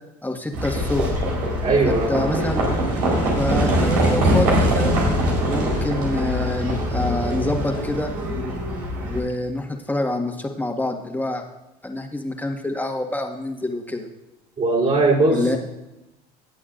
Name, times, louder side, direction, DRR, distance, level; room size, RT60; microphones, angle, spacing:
voice 1, 0.2-1.1 2.1-2.8 3.4-5.0 5.5-8.1 9.1-11.4 11.8-14.1 15.3-15.6, left 1 dB, 10° left, 2 dB, 1.8 m, -26 dB
Livestock farm animals working animals, 0.5-9.2, equal, 85° right, 4.5 m, -22 dB
voice 2, 1.6-2.2 14.6-15.6, right 3 dB, 40° right, -1 dB, 4.1 m, -19 dB
19.0 x 8.5 x 2.6 m, 0.96 s
supercardioid pair, 85°, 20 cm